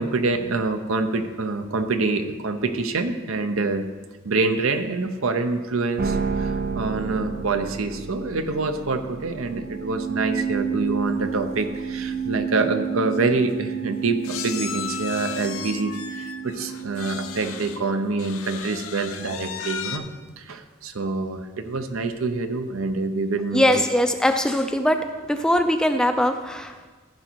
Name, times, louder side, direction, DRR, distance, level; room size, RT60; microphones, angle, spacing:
voice 1, 0.0-3.9 4.2-20.1 20.4-23.8, right 3 dB, 80° right, 8 dB, 0.7 m, -26 dB
sound 1, 6.0-18.3, right 6 dB, 45° right, 0.5 m, -31 dB
sound 2, 12.8-12.9 13.1-13.3 14.2-17.8 18.2-20.0, left 8 dB, 90° left, 0.7 m, -35 dB
voice 2, 23.5-26.9, left 1 dB, 5° left, 7 dB, 0.3 m, -21 dB
14.0 x 5.2 x 4.6 m, 1.4 s
head